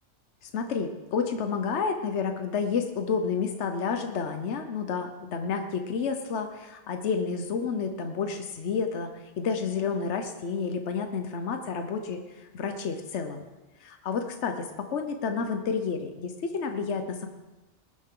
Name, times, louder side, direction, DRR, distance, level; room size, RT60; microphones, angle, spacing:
voice 1, 0.4-13.4 13.8-17.3, left 5 dB, 80° left, 6 dB, 1.2 m, -30 dB
19.5 x 9.8 x 3.7 m, 1.1 s
omnidirectional pair, 1.2 m